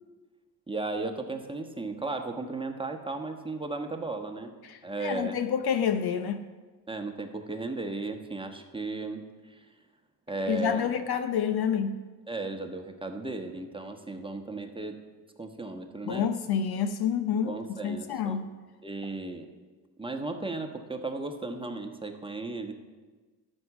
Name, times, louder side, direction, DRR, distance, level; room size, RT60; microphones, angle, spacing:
voice 1, 0.7-4.5 4.8-5.4 6.9-9.6 10.3-10.9 12.3-14.9 15.4-16.3 17.5-18.4 18.8-19.5 20.0-22.7, right 3 dB, 10° right, 5 dB, 1.3 m, -35 dB
voice 2, 4.6-6.4 10.5-12.0 16.1-17.5 17.8-18.4, left 8 dB, 50° left, 10 dB, 0.7 m, -28 dB
12.5 x 5.4 x 7.2 m, 1.3 s
hypercardioid pair, 45°, 49 cm